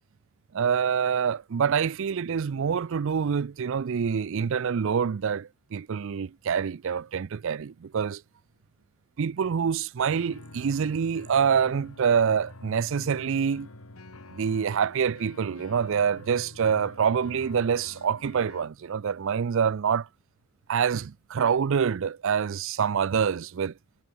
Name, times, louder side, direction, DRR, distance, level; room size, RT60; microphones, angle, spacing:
voice 1, 0.5-8.2 9.2-13.7 14.3-20.1 20.7-23.7, right 7 dB, 60° right, 0.4 m, -26 dB
sound 1, 10.0-18.7, left 2 dB, 75° left, 2.2 m, -47 dB
head